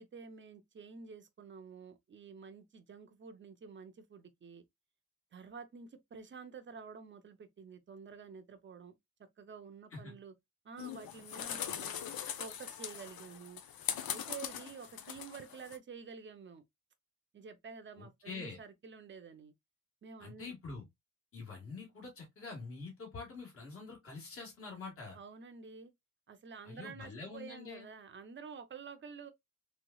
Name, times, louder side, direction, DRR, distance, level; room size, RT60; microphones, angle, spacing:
voice 1, 0.0-4.6 5.3-8.9 9.4-10.3 10.6-11.9 12.4-13.6 14.1-16.6 17.3-19.5 20.0-20.5 25.1-25.9 26.3-29.3, right 5 dB, 35° right, 0.6 m, -50 dB
sound 1, 10.8-15.8, left 9 dB, 90° left, 0.7 m, -41 dB
voice 2, 18.0-18.6 20.2-20.8 21.3-25.2 26.6-27.9, left 4 dB, 40° left, 1.4 m, -46 dB
3.4 x 3.1 x 2.2 m
wide cardioid pair, 155°, 35 cm